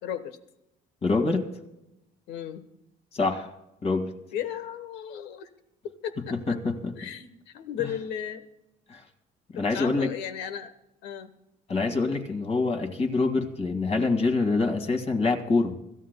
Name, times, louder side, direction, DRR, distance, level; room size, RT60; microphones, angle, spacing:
voice 1, 0.0-0.4 2.3-2.6 4.3-5.5 5.8-6.6 7.0-8.5 9.5-10.7 11.0-11.3, left 9 dB, 85° left, 11 dB, 1.1 m, -35 dB
voice 2, 1.0-1.5 3.1-3.5 3.8-4.1 6.5-6.9 8.9-9.0 9.5-10.1 11.7-15.7, left 3 dB, 40° left, 5 dB, 2.1 m, -25 dB
25.5 x 13.5 x 2.2 m, 0.88 s
cardioid pair, 110°, 17 cm